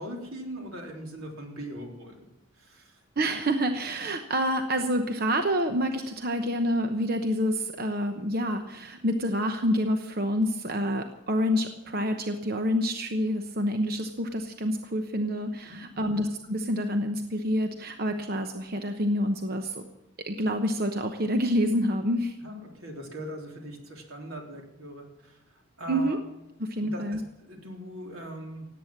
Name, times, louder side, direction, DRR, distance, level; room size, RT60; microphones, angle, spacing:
voice 1, 0.0-2.3 2.5-3.0 15.7-16.2 22.4-26.2 26.8-28.7, equal, 90° right, 1 dB, 3.6 m, -41 dB
voice 2, 3.2-19.8 20.3-22.4 25.9-26.2 26.6-27.2, equal, 45° right, 6 dB, 1.0 m, -27 dB
17.5 x 9.0 x 7.4 m, 0.92 s
head